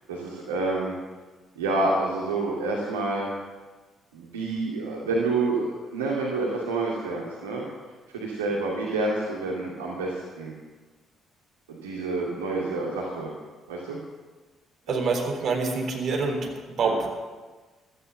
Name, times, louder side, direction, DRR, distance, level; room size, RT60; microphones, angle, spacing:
voice 1, 0.1-1.0 1.6-3.3 4.1-7.7 8.1-10.5 11.7-13.3 13.7-14.0 16.8-16.9, right 2 dB, 75° right, -3 dB, 2.4 m, -28 dB
voice 2, 14.9-17.1, right 4 dB, 50° right, 3 dB, 3.6 m, -26 dB
16.0 x 13.5 x 6.5 m, 1.3 s
figure-of-eight pair, 45°, 0 cm